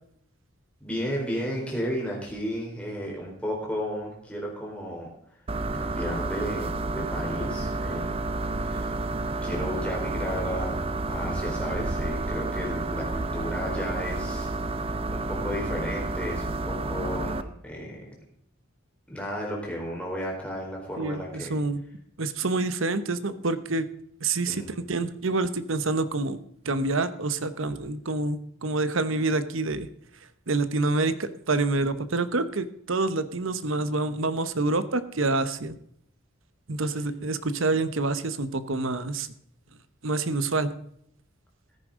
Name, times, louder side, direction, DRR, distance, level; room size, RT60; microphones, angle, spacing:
voice 1, 0.8-5.4 5.7-8.3 8.6-9.0 9.4-18.0 19.1-21.5 24.5-25.1, equal, 5° left, -2 dB, 4.1 m, -34 dB
sound 1, 5.5-17.4, right 2 dB, 25° right, 0.6 m, -30 dB
voice 2, 21.0-21.8 22.2-23.9 24.2-26.4 26.6-29.9 30.5-35.8 36.7-39.3 40.0-40.7, right 3 dB, 70° right, 13 dB, 0.9 m, -27 dB
14.5 x 10.0 x 3.7 m, 0.69 s
head